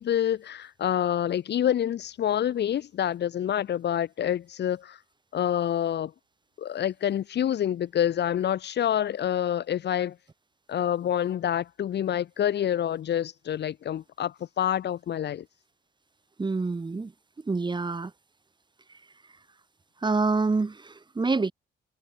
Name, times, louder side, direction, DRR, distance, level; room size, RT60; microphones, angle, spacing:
voice 1, 0.0-5.0 5.3-6.1 6.6-10.2 10.7-15.4, left 10 dB, 60° left, 1.0 m, -27 dB
voice 2, 16.4-17.1 17.5-18.1 20.0-21.5, right 3 dB, 25° right, 1.8 m, -26 dB
cardioid pair, 90°, 20 cm